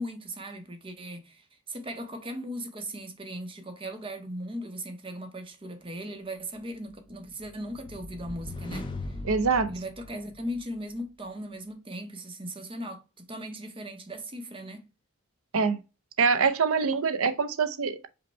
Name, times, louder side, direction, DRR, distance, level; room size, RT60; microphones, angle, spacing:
voice 1, 0.0-8.9 9.7-14.9, equal, 25° right, 0.8 m, -38 dB
sound 1, 6.9-10.8, left 2 dB, 20° left, 0.6 m, -40 dB
voice 2, 9.2-9.7 15.5-15.8 16.2-18.1, right 5 dB, 65° right, 0.6 m, -24 dB
5.2 x 2.2 x 4.2 m
head